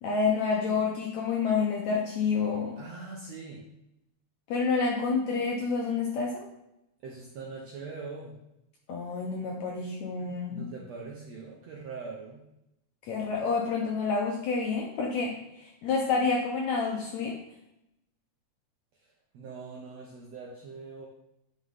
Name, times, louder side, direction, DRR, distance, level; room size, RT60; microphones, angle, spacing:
voice 1, 0.0-2.8 4.5-6.5 8.9-10.7 13.0-17.4, left 4 dB, 75° left, -1 dB, 1.7 m, -28 dB
voice 2, 2.8-3.7 7.0-8.4 10.5-12.5 18.9-21.1, right 4 dB, 75° right, -2 dB, 1.5 m, -42 dB
9.7 x 5.0 x 3.6 m, 0.86 s
omnidirectional pair, 4.1 m